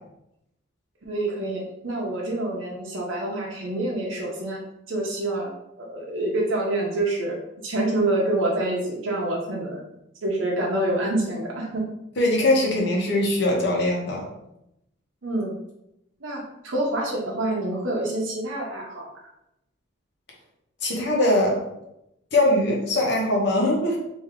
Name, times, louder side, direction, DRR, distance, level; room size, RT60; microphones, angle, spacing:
voice 1, 1.1-4.6 4.9-5.5 5.8-7.4 7.6-9.8 10.2-11.8 15.2-15.5 16.2-19.3, right 1 dB, 85° right, -3 dB, 0.8 m, -27 dB
voice 2, 12.2-14.3 20.8-21.6 22.3-24.0, left 1 dB, 60° left, -1 dB, 0.9 m, -21 dB
3.3 x 2.7 x 3.6 m, 0.85 s
head